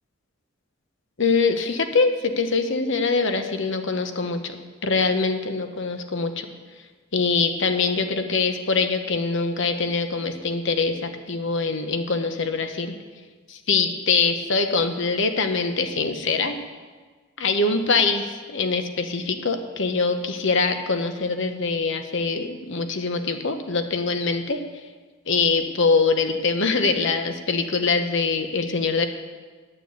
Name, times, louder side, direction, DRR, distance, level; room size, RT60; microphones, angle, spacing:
voice 1, 1.2-6.5 7.1-12.9 13.5-16.6 17.4-24.6 25.3-29.1, left 4 dB, 65° left, 7 dB, 1.0 m, -23 dB
9.1 x 8.7 x 8.1 m, 1.4 s
head